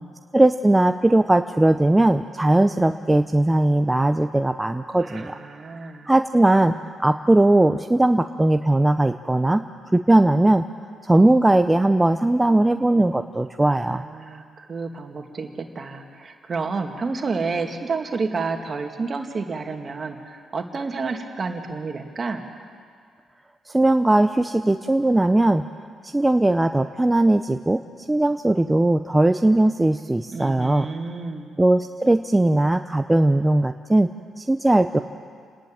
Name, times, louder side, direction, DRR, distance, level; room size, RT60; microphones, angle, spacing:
voice 1, 0.3-5.4 6.1-9.6 9.9-10.6 11.0-14.0 23.7-25.7 26.0-27.8 28.1-30.9 31.6-34.1 34.4-35.0, right 1 dB, 15° right, 8 dB, 0.6 m, -19 dB
voice 2, 5.0-6.1 13.6-22.4 30.3-31.5, right 4 dB, 45° right, 4 dB, 2.4 m, -30 dB
29.0 x 10.5 x 8.8 m, 2.1 s
supercardioid pair, 65°, 0 cm